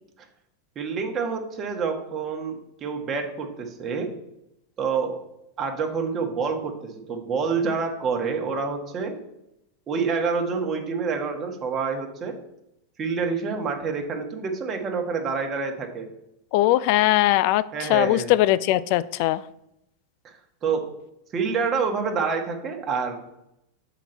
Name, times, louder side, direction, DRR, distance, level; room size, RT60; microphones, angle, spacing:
voice 1, 0.7-4.1 4.8-5.2 5.6-9.2 9.9-12.3 13.0-16.1 17.7-18.3 20.2-20.3 20.6-20.8 21.3-23.2, right 5 dB, 30° right, 3 dB, 1.4 m, -27 dB
voice 2, 16.5-19.4, left 15 dB, 60° left, 17 dB, 0.4 m, -20 dB
7.1 x 4.0 x 4.5 m, 0.84 s
hypercardioid pair, 110°, 0 cm